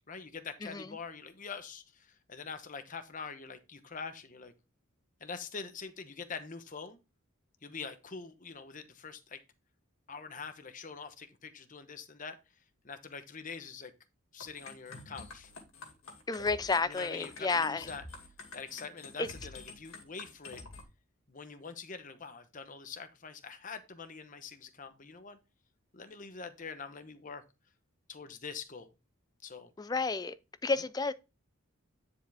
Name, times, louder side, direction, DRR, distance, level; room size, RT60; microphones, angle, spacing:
voice 1, 0.1-4.5 5.2-7.0 7.6-9.4 10.1-12.4 12.8-13.9 14.3-15.5 16.9-18.0 18.5-20.6 21.3-25.4 25.9-27.4 28.1-28.9 29.4-29.7, left 5 dB, 35° left, 0.9 m, -44 dB
sound 1, 14.4-20.8, left 3 dB, 75° left, 2.2 m, -48 dB
voice 2, 16.3-17.9 19.2-19.3 29.8-30.3 30.6-31.1, left 4 dB, 20° left, 0.3 m, -31 dB
10.0 x 4.8 x 3.4 m
head